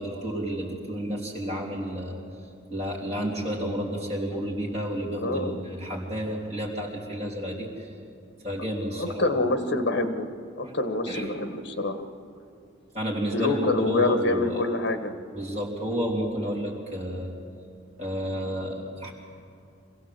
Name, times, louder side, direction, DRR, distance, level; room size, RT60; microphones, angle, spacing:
voice 1, 0.0-2.2 2.7-7.9 8.4-9.2 11.1-11.3 12.9-14.6 15.3-17.3 18.0-19.1, equal, 35° right, -3 dB, 3.5 m, -31 dB
voice 2, 5.2-5.6 9.0-10.3 10.5-12.0 13.3-15.1, left 2 dB, 65° left, 8 dB, 1.4 m, -26 dB
24.5 x 16.0 x 7.7 m, 2.4 s
head